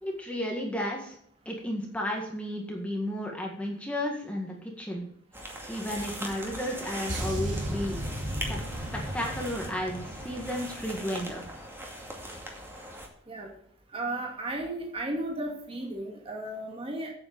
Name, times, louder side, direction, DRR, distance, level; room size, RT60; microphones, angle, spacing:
voice 1, 0.0-1.1 1.5-5.1 5.7-8.0 8.5-8.6 9.1-11.4, left 1 dB, 5° left, -1 dB, 1.8 m, -33 dB
sound 1, 5.3-13.1, right 1 dB, 10° right, 2.2 m, -40 dB
sound 2, 7.1-11.6 11.9-12.2, equal, 65° right, 3.4 m, -36 dB
voice 2, 13.9-17.1, right 1 dB, 30° right, 0 dB, 2.3 m, -34 dB
8.7 x 8.7 x 6.9 m, 0.67 s
head